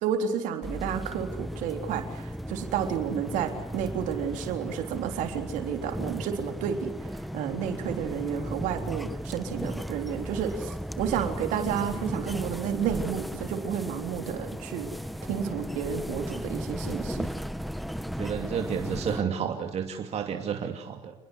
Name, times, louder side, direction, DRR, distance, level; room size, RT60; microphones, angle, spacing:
voice 1, 0.0-14.9 15.3-17.3, right 8 dB, 75° right, 5 dB, 3.5 m, -31 dB
sound 1, 0.6-19.2, equal, ahead, 1.3 m, -36 dB
voice 2, 18.2-21.1, right 7 dB, 55° right, 4 dB, 2.6 m, -31 dB
28.0 x 21.0 x 8.1 m, 0.88 s
hypercardioid pair, 65°, 13 cm